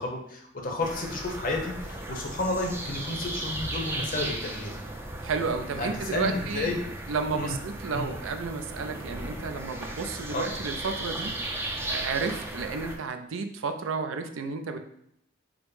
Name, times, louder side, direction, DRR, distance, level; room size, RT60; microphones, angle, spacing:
voice 1, 0.0-4.8 5.8-6.8 7.3-7.6 7.9-8.1 10.3-10.4, left 2 dB, 40° left, 1 dB, 0.7 m, -31 dB
sound 1, 0.8-13.0, right 1 dB, 10° right, 0.4 m, -36 dB
voice 2, 5.2-6.7 7.1-11.3 11.9-14.8, right 4 dB, 70° right, 7 dB, 0.4 m, -32 dB
4.9 x 2.1 x 4.7 m, 0.73 s
head